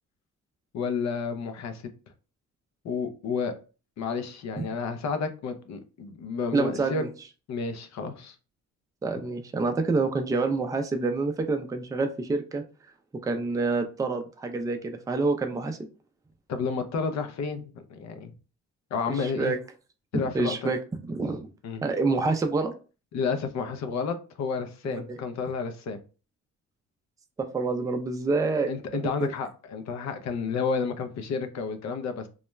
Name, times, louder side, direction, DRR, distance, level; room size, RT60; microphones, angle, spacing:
voice 1, 0.7-1.8 2.8-3.5 4.0-7.0 7.5-8.3 16.5-18.3 18.9-19.5 20.1-20.7 21.6-21.8 23.1-26.0 28.7-32.3, left 5 dB, 65° left, 0.5 m, -31 dB
voice 2, 6.5-7.1 9.0-12.6 13.2-15.8 19.1-19.6 20.1-21.5 21.8-22.7 24.8-25.2 27.4-28.7 29.0-29.3, right 3 dB, 10° right, 0.3 m, -27 dB
2.3 x 2.1 x 3.0 m
cardioid pair, 90°, 30 cm